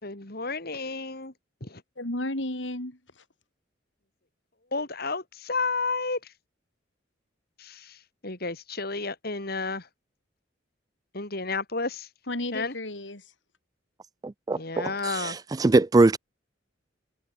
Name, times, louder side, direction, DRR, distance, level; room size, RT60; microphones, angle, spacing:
voice 1, 0.0-1.3 1.6-1.8 4.7-6.3 7.6-9.9 11.1-12.1 12.5-12.7 14.5-15.4, left 3 dB, 55° left, 4.0 m, -32 dB
voice 2, 2.0-3.2 12.3-13.3, left 1 dB, 80° left, 4.6 m, -33 dB
voice 3, 14.2-14.9 15.2-15.3 15.6-16.2, right 2 dB, 20° right, 0.3 m, -21 dB
head